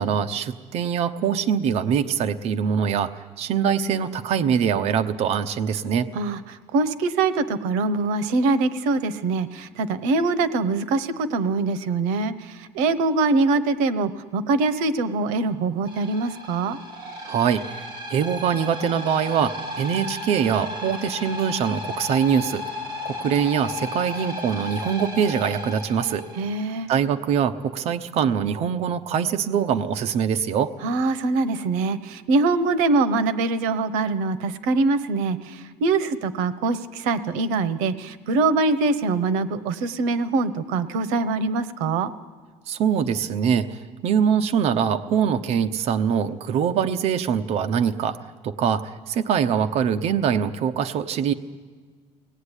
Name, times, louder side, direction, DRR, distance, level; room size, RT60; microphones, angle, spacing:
voice 1, 0.0-3.1 3.4-6.1 17.2-17.8 18.1-22.6 23.0-26.3 26.9-30.7 42.7-48.2 48.4-51.3, right 7 dB, 55° right, 7 dB, 0.9 m, -23 dB
voice 2, 6.7-12.3 12.6-16.8 26.4-26.9 30.8-42.1, right 3 dB, 90° right, 14 dB, 1.1 m, -23 dB
sound 1, 15.9-26.7, left 2 dB, 35° right, 5.5 m, -34 dB
23.0 x 18.5 x 9.9 m, 1.5 s
cardioid pair, 140°, 13 cm